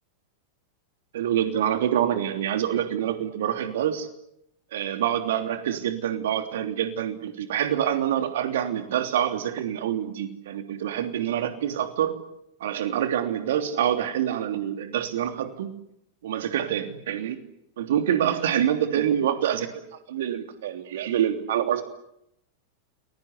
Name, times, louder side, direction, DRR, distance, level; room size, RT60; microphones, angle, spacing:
voice 1, 1.1-4.1 4.7-12.2 12.6-15.7 16.2-17.4 17.8-21.8, right 10 dB, 60° right, 7 dB, 3.1 m, -26 dB
29.5 x 22.0 x 8.2 m, 0.79 s
figure-of-eight pair, 90°, 0 cm